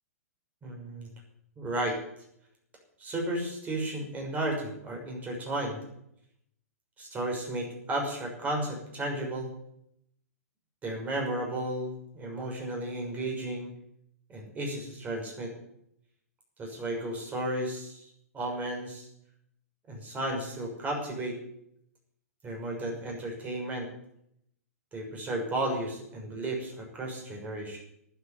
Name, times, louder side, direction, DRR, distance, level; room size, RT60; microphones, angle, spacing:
voice 1, 0.6-1.1 1.6-2.0 3.0-5.8 7.0-9.5 10.8-13.7 14.3-15.5 16.6-19.1 19.9-21.4 22.4-23.9 24.9-27.8, right 1 dB, 20° right, 0 dB, 6.1 m, -33 dB
11.5 x 8.8 x 10.0 m, 0.73 s
hypercardioid pair, 120°, 8 cm